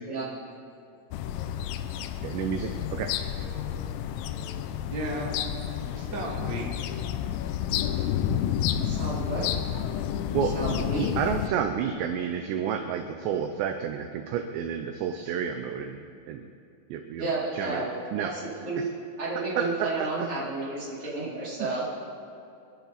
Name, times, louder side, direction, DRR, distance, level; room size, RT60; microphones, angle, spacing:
sound 1, 1.1-11.5, left 10 dB, 85° left, 3.3 m, -30 dB
voice 1, 2.2-3.1 10.3-10.6 11.0-16.0 16.3-16.4 16.9-17.2 17.5-17.8 18.1-18.3 19.6-19.7 20.0-20.1 21.6-21.8, right 8 dB, 80° right, 6 dB, 2.6 m, -30 dB
voice 2, 3.4-3.9 4.3-4.6 4.8-5.3 5.7-7.0, right 2 dB, 50° right, -3 dB, 1.4 m, -37 dB
voice 3, 8.8-9.5 10.4-11.1 17.2-18.9 19.2-21.8, right 3 dB, 30° right, -7 dB, 4.2 m, -32 dB
28.0 x 11.5 x 4.1 m, 2.6 s
omnidirectional pair, 5.9 m